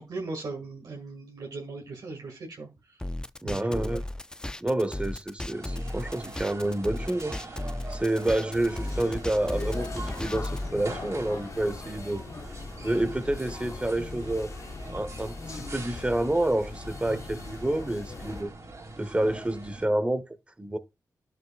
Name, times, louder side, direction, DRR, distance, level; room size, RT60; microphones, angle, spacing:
voice 1, 0.0-2.7 3.4-4.0 17.1-17.2, right 3 dB, 70° right, 2.1 m, -38 dB
sound 1, 3.0-10.7, left 1 dB, 10° left, 0.4 m, -35 dB
voice 2, 3.4-4.0 4.6-7.6 7.9-9.9 10.1-12.2 12.8-14.5 14.9-18.5 19.0-20.3 20.6-20.8, right 1 dB, 15° right, 1.1 m, -28 dB
sound 2, 5.5-19.9, right 2 dB, 45° right, 3.0 m, -44 dB
sound 3, 8.5-18.4, left 3 dB, 45° left, 1.0 m, -40 dB
11.0 x 6.4 x 2.5 m
cardioid pair, 60°, 7 cm